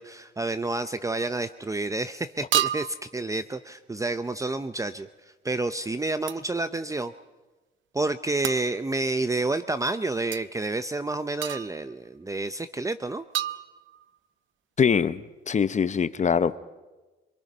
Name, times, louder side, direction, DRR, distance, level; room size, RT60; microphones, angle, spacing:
voice 1, 0.0-5.1 5.4-7.1 7.9-13.2, right 2 dB, 15° right, 11 dB, 0.7 m, -29 dB
sound 1, 1.2-1.4 2.5-3.1 6.3-6.5 8.4-8.7 10.3-10.4 11.4-11.9 13.3-14.1, right 12 dB, 75° right, 0.7 m, -30 dB
voice 2, 14.8-16.6, left 6 dB, 35° left, 14 dB, 0.8 m, -23 dB
25.0 x 23.0 x 5.5 m, 1.2 s
cardioid pair, 90°, 20 cm